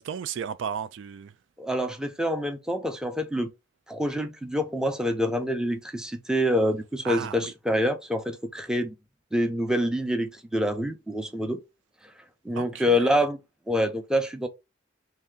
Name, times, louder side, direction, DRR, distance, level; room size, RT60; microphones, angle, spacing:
voice 1, 0.0-1.3 7.0-7.5 12.6-13.1, right 7 dB, 70° right, 0.3 m, -34 dB
voice 2, 1.6-3.5 3.9-8.9 9.3-11.6 12.4-13.4 13.7-14.5, equal, 5° right, 0.6 m, -26 dB
3.3 x 2.8 x 3.5 m
head